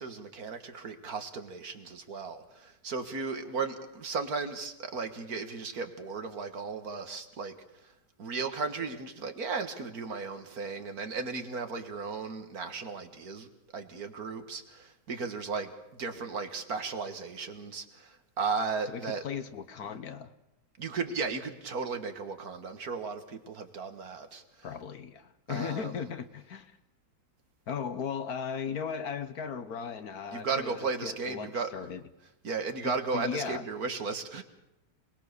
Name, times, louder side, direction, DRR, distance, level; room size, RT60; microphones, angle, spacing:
voice 1, 0.0-7.6 7.8-7.9 8.2-13.5 13.7-19.2 19.8-19.9 20.8-24.4 25.5-25.9 30.3-31.7 32.4-34.4, right 4 dB, 60° right, 7 dB, 2.0 m, -35 dB
voice 2, 18.9-20.3 24.6-26.8 27.7-32.0 32.8-33.6, left 7 dB, 60° left, 11 dB, 1.5 m, -37 dB
27.0 x 20.0 x 6.8 m, 0.87 s
omnidirectional pair, 1.9 m